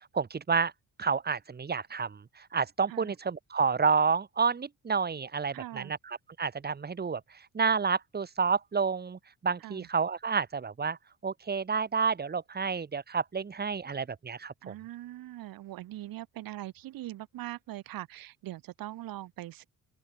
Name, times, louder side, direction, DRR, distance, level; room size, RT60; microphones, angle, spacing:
voice 1, 0.1-0.7 1.0-11.0 11.2-14.7, right 5 dB, 30° right, 6.8 m, -30 dB
voice 2, 5.5-5.9 9.6-9.9 14.6-19.7, right 15 dB, 80° right, 7.1 m, -41 dB
open air
cardioid pair, 140°, 34 cm